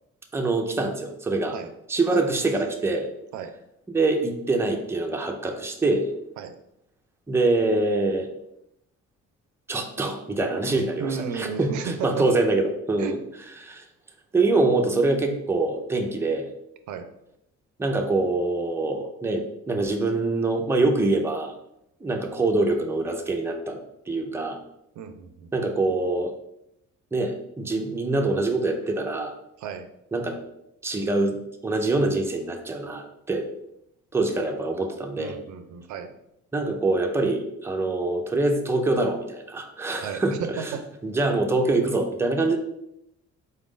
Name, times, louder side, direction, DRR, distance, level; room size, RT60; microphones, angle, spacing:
voice 1, 0.3-1.6 1.9-3.1 3.9-6.1 7.3-8.3 9.7-11.1 11.3-13.2 13.6-13.8 14.3-16.5 17.8-21.5 22.0-23.8 24.1-24.6 25.5-26.3 27.1-29.3 30.1-30.4 30.8-33.5 34.1-35.4 36.5-40.8 41.0-42.6, right 2 dB, 10° right, 2 dB, 0.5 m, -24 dB
voice 2, 11.0-12.3 13.0-13.2 16.9-17.1 25.0-25.7 29.6-29.9 35.2-36.1 40.0-40.8, right 6 dB, 75° right, 8 dB, 0.5 m, -34 dB
4.1 x 2.5 x 3.6 m, 0.81 s
cardioid pair, 90°, 30 cm